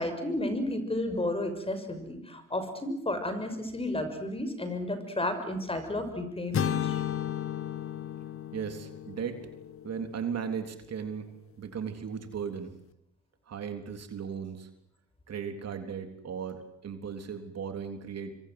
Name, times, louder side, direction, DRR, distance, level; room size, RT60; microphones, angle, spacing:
voice 1, 0.0-7.0, left 1 dB, 20° left, 9 dB, 6.3 m, -32 dB
sound 1, 6.5-10.6, left 9 dB, 45° left, 1.4 m, -34 dB
voice 2, 8.5-9.5 9.8-11.3 11.6-12.8 13.5-14.7 15.3-18.4, right 7 dB, 55° right, 7 dB, 3.7 m, -36 dB
25.5 x 25.0 x 7.9 m, 0.74 s
cardioid pair, 90°, 30 cm